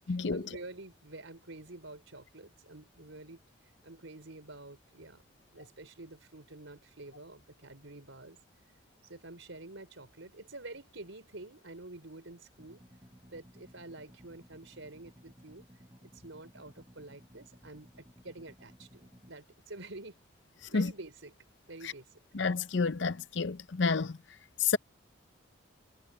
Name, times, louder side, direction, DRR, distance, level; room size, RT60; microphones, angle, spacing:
voice 1, 0.1-3.4 3.8-5.2 5.5-8.4 9.0-12.8 13.2-15.6 16.0-20.2 20.7-21.3 21.7-22.1, right 2 dB, 80° right, 4.2 m, -48 dB
sound 1, 12.6-19.3, equal, 20° right, 7.5 m, -58 dB
voice 2, 22.3-24.2 24.6-24.8, left 4 dB, 65° left, 0.7 m, -29 dB
head